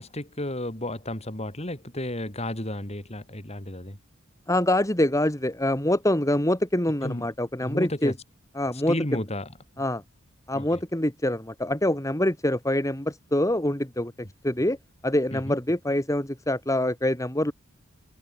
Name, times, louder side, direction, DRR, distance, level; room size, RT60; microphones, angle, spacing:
voice 1, 0.0-4.0 7.0-7.3 7.6-8.2 8.7-9.5 10.5-10.8 15.3-15.6, left 1 dB, 30° left, 4.5 m, -32 dB
voice 2, 4.5-8.1 8.6-9.0 9.8-10.0 10.5-14.1 14.4-14.8 15.0-17.5, left 1 dB, 15° left, 3.1 m, -25 dB
open air
head